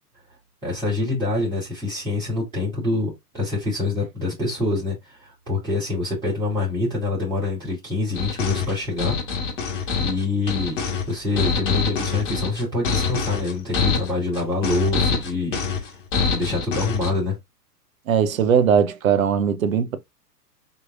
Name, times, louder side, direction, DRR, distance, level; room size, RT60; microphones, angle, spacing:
voice 1, 0.6-9.2 9.8-10.7 11.1-16.0 16.3-17.3, left 3 dB, ahead, 0.3 m, -26 dB
sound 1, 8.1-17.1, left 5 dB, 50° left, 1.9 m, -25 dB
voice 2, 18.1-20.0, right 7 dB, 60° right, 0.8 m, -19 dB
5.3 x 2.9 x 2.5 m
figure-of-eight pair, 110°, 48 cm